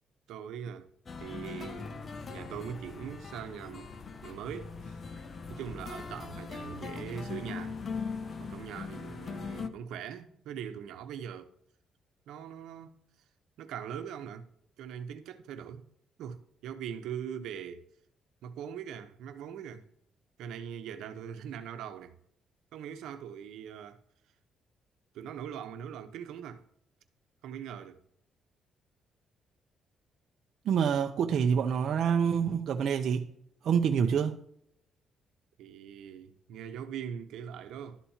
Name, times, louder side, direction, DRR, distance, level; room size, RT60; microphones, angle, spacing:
voice 1, 0.3-0.9 1.2-2.0 2.3-3.9 4.2-5.0 5.5-7.8 8.4-11.5 12.3-12.9 13.6-14.5 14.8-15.8 16.2-17.9 18.4-19.9 20.4-22.2 22.7-24.0 25.1-26.6 27.4-28.0 35.6-38.0, right 8 dB, 85° right, 1.1 m, -41 dB
sound 1, 1.1-9.7, left 5 dB, 40° left, 1.0 m, -40 dB
voice 2, 30.7-33.3 33.6-34.3, right 7 dB, 65° right, 0.7 m, -26 dB
12.5 x 4.3 x 7.3 m
cardioid pair, 90°, 0 cm